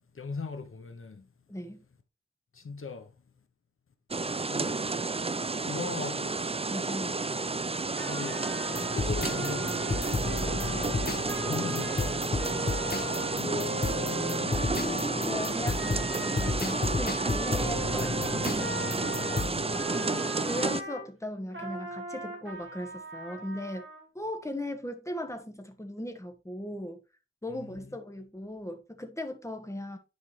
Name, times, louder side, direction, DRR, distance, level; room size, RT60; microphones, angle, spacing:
voice 1, 0.1-1.3 2.5-3.1 4.5-4.8 5.6-6.4 7.8-10.1 11.5-12.9 19.4-20.2, left 4 dB, 80° left, 0.9 m, -39 dB
voice 2, 1.5-1.8 6.7-7.2 10.5-11.0 13.1-13.5 15.2-18.7 19.9-23.8 24.1-27.0 27.4-30.0, left 1 dB, 15° left, 1.4 m, -38 dB
sound 1, 4.1-20.8, right 3 dB, 30° right, 0.4 m, -31 dB
Trumpet, 8.0-21.1 21.5-24.0, right 1 dB, 65° right, 2.2 m, -39 dB
sound 2, 8.7-19.8, left 3 dB, 45° left, 1.1 m, -33 dB
9.7 x 5.0 x 3.2 m
wide cardioid pair, 65°, 21 cm